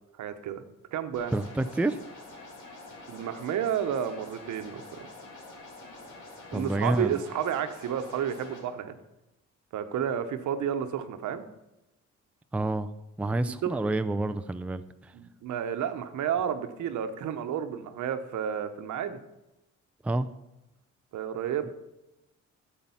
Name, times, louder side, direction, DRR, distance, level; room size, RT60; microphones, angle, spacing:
voice 1, 0.2-0.6 0.9-1.3 3.1-5.1 6.5-9.0 9.7-11.4 13.6-13.7 15.1-19.2 21.1-21.7, right 9 dB, 75° right, 9 dB, 1.0 m, -31 dB
sound 1, 1.1-8.6, left 2 dB, 80° left, 2.8 m, -47 dB
voice 2, 1.3-2.0 6.5-7.2 12.5-12.9 13.2-15.1 20.0-20.3, right 2 dB, 5° right, 10 dB, 0.4 m, -28 dB
10.5 x 7.5 x 5.6 m, 0.95 s
cardioid pair, 90°, 30 cm